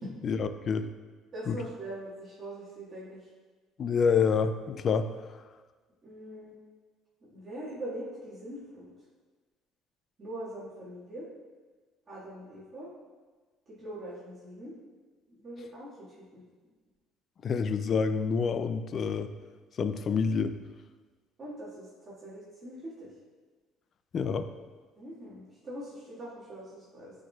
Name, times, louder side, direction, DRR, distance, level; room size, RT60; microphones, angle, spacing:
voice 1, 0.2-0.9 1.5-1.6 3.8-5.1 5.3-5.4 17.4-19.3 19.8-20.5 24.1-24.5, left 5 dB, 45° left, 10 dB, 0.3 m, -27 dB
voice 2, 1.3-3.2 6.0-6.5 7.3-8.8 10.2-11.3 12.1-12.9 13.8-14.8 15.4-15.9 16.3-16.4 21.4-23.1 25.0-27.1, right 1 dB, 30° right, -9 dB, 1.9 m, -42 dB
9.0 x 4.5 x 2.4 m, 1.4 s
cardioid pair, 115°, 0 cm